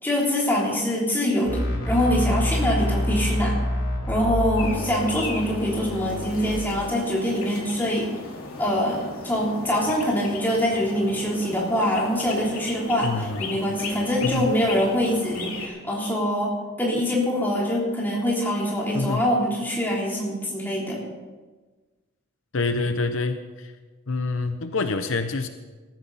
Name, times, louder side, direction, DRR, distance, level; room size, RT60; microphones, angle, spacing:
voice 1, 0.0-3.6 4.1-8.1 8.6-21.0, equal, 10° left, -4 dB, 3.4 m, -24 dB
sound 1, 1.4-6.5, left 1 dB, 40° left, 5.2 m, -27 dB
sound 2, 4.6-15.7, left 3 dB, 80° left, 2.8 m, -36 dB
voice 2, 13.0-13.6 14.2-14.5 18.9-19.2 22.5-23.4 24.1-25.5, left 3 dB, 65° left, 8 dB, 0.8 m, -26 dB
19.0 x 14.0 x 4.1 m, 1.3 s
head